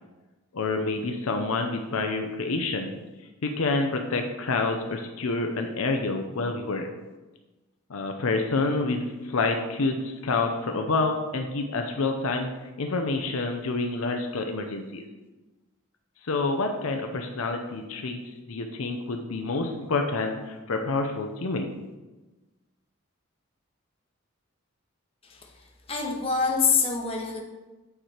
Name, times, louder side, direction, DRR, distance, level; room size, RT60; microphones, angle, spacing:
voice 1, 0.5-3.0 3.4-6.9 7.9-12.5 12.8-15.0 16.3-18.2 18.5-21.7, left 3 dB, 75° left, 4 dB, 0.6 m, -28 dB
voice 2, 25.2-27.4, left 5 dB, 25° left, 1 dB, 0.8 m, -26 dB
8.7 x 3.3 x 4.4 m, 1.1 s
head